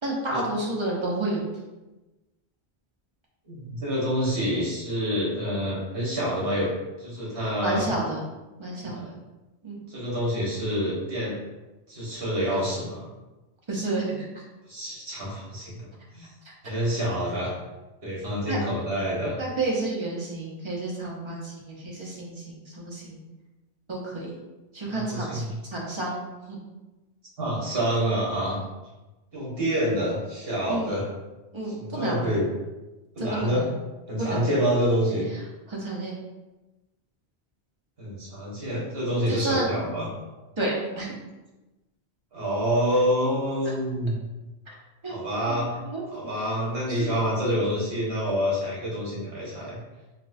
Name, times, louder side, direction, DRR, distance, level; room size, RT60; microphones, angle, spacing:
voice 1, 0.0-1.4 7.6-8.2 8.6-9.0 9.6-9.8 13.7-14.3 18.5-18.6 19.4-23.2 23.9-24.3 24.7-25.4 25.7-26.6 30.7-30.9 31.5-32.3 33.2-33.7 34.2-34.5 35.7-36.1 39.3-39.7 40.6-41.1 45.0-45.2 45.5-45.6 45.8-46.0 46.9-47.0, right 2 dB, 30° right, -3 dB, 0.7 m, -30 dB
voice 2, 3.5-6.7 7.0-7.9 8.9-9.1 9.9-11.3 11.9-13.1 14.7-15.9 16.1-16.3 16.6-17.5 18.0-19.4 24.8-25.5 27.4-28.6 29.3-31.0 31.8-32.4 33.1-33.6 34.1-35.2 38.0-40.1 42.3-44.2 45.1-45.7 46.1-49.8, equal, 65° right, -6 dB, 1.4 m, -27 dB
4.0 x 2.2 x 2.6 m, 1.1 s
omnidirectional pair, 1.1 m